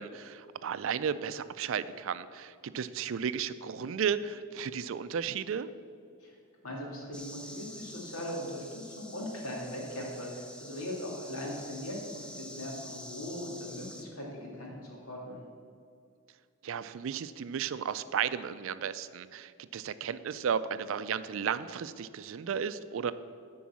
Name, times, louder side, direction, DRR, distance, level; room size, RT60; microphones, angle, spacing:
voice 1, 0.0-5.7 16.6-23.1, right 7 dB, 60° right, 14 dB, 0.4 m, -34 dB
voice 2, 6.6-15.4, left 1 dB, 85° left, -2 dB, 2.4 m, -39 dB
sound 1, 7.1-14.1, left 1 dB, 5° left, 0.5 m, -48 dB
10.5 x 4.6 x 7.3 m, 2.3 s
head